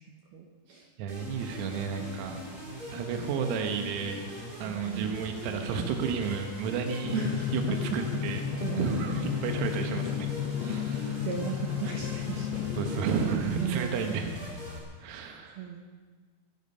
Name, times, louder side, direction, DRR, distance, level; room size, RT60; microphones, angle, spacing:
voice 1, 0.0-0.9 4.8-5.2 7.1-8.2 8.6-8.9 9.4-9.5 11.2-12.7 12.9-13.1 13.6-14.0 15.1-15.8, right 8 dB, 75° right, 1 dB, 2.3 m, -36 dB
voice 2, 1.0-2.4 2.9-4.3 4.6-7.2 7.5-8.4 8.8-11.3 12.8-14.5 15.0-15.7, right 6 dB, 90° right, 5 dB, 3.9 m, -32 dB
sound 1, 1.1-14.8, left 1 dB, 20° right, 3.5 m, -41 dB
Drum, 7.0-13.0, left 10 dB, 90° left, 2.5 m, -33 dB
24.5 x 11.0 x 5.5 m, 1.5 s
omnidirectional pair, 6.0 m